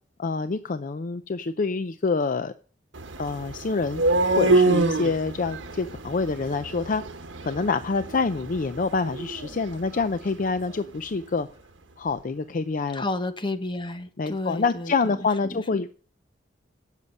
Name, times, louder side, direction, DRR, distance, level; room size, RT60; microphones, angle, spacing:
voice 1, 0.2-2.5 3.2-4.0 4.4-7.0 7.4-11.5 12.0-13.0 14.2-15.9, left 4 dB, 45° left, 0.5 m, -26 dB
sound 1, 2.9-10.9, right 3 dB, 80° right, 1.2 m, -27 dB
voice 2, 12.9-15.6, left 2 dB, 25° left, 1.1 m, -32 dB
16.5 x 6.7 x 5.5 m
head